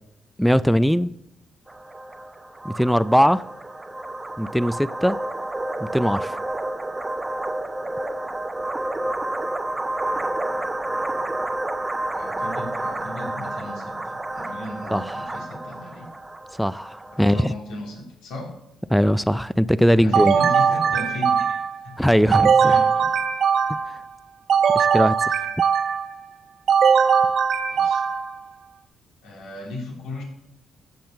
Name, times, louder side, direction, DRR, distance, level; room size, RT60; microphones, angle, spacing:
voice 1, 0.4-1.1 2.6-3.4 4.4-5.2 5.8-6.4 14.9-15.2 16.6-17.5 18.9-20.3 22.0-22.8 23.7-24.0 24.7-25.3, equal, ahead, 0.3 m, -20 dB
sound 1, 1.7-17.4, right 2 dB, 15° right, 0.8 m, -30 dB
voice 2, 12.1-16.1 17.2-18.5 19.9-22.0 22.6-23.2 27.7-28.0 29.2-30.2, left 1 dB, 90° left, 3.2 m, -35 dB
sound 2, 20.1-21.8 22.3-24.0 24.5-26.1 26.7-28.4, right 6 dB, 65° right, 1.0 m, -20 dB
15.0 x 5.5 x 6.8 m
cardioid pair, 90°, 0 cm